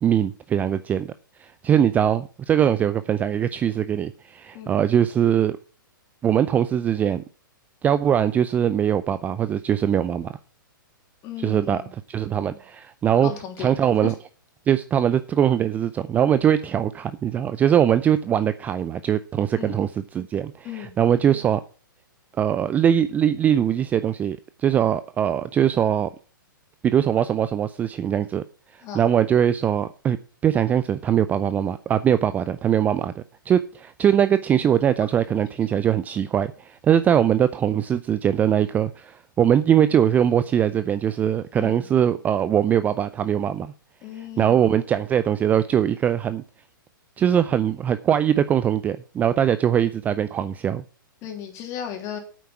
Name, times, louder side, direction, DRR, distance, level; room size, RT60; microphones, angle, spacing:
voice 1, 0.0-1.1 1.4-5.6 6.2-7.2 7.8-10.3 11.4-11.8 12.1-13.3 13.6-14.1 14.7-19.9 20.1-21.6 22.4-26.1 26.8-28.4 28.7-30.2 30.4-43.7 44.4-46.4 47.2-50.8, right 9 dB, 15° right, 0.4 m, -21 dB
voice 2, 11.2-11.9 13.2-13.8 14.0-14.1 19.5-19.8 20.6-20.9 28.8-29.0 41.5-41.9 44.0-44.6 51.2-52.2, left 9 dB, 30° left, 3.2 m, -35 dB
9.2 x 8.4 x 5.8 m
figure-of-eight pair, 115°, 11 cm